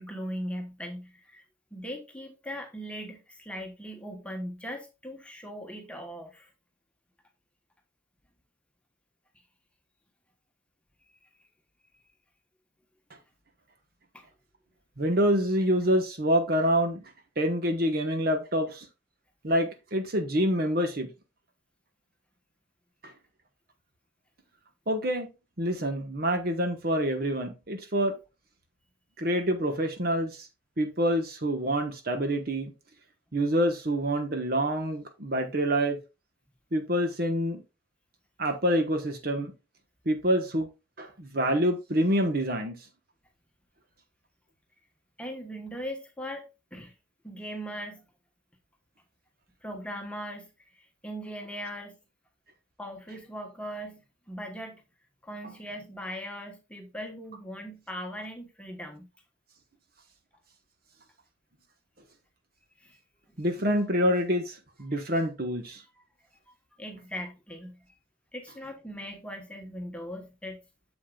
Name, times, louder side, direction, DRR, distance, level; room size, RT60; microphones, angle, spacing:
voice 1, 0.0-1.4 1.7-6.5 14.1-14.2 45.2-46.9 47.2-48.0 49.6-50.5 50.7-52.0 52.8-54.0 54.3-54.8 55.2-59.1 62.8-63.0 63.3-63.4 65.9-66.0 66.5-67.8 68.3-70.6, equal, 5° left, 1.1 m, -39 dB
voice 2, 15.0-17.0 17.4-18.9 19.4-21.1 23.0-23.1 24.9-25.3 25.6-28.2 29.2-30.5 30.8-32.7 33.3-36.0 36.7-37.6 38.4-39.5 40.0-40.7 41.0-42.7 63.4-65.8, equal, 50° right, 1.2 m, -26 dB
8.3 x 7.3 x 2.3 m
head